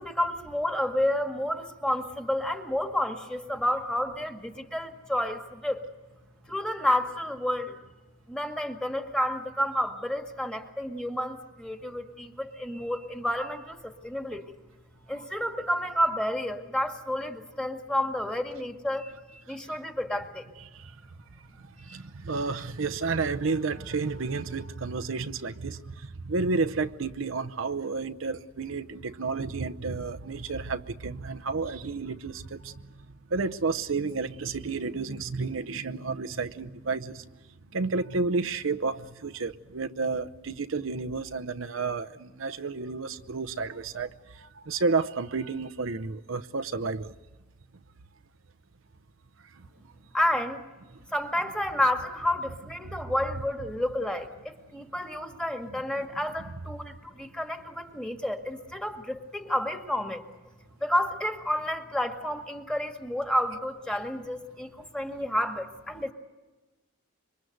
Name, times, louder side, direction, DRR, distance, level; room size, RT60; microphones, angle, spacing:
voice 1, 0.0-5.9 6.5-7.8 8.3-14.5 15.1-20.5 21.9-22.0 50.1-50.6 51.1-60.2 60.8-66.1, left 1 dB, 5° left, 2.0 m, -30 dB
voice 2, 21.9-25.8 26.2-32.7 33.3-37.2 37.7-44.1 44.3-47.1, right 4 dB, 70° right, 0.8 m, -31 dB
26.5 x 24.0 x 8.0 m
head